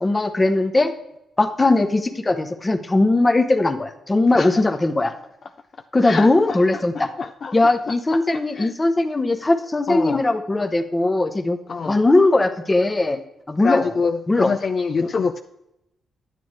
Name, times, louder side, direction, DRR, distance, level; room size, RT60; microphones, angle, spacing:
voice 1, 0.0-0.9 1.4-5.1 5.9-7.1 7.5-11.6 11.9-13.2 13.5-13.8 14.3-14.5 15.0-15.1, left 2 dB, 20° left, 8 dB, 0.9 m, -19 dB
voice 2, 6.0-7.7 8.1-8.7 9.9-10.2 11.7-12.0 13.6-15.4, left 5 dB, 50° left, 7 dB, 0.4 m, -26 dB
10.5 x 9.3 x 3.2 m, 0.86 s
cardioid pair, 90°, 0 cm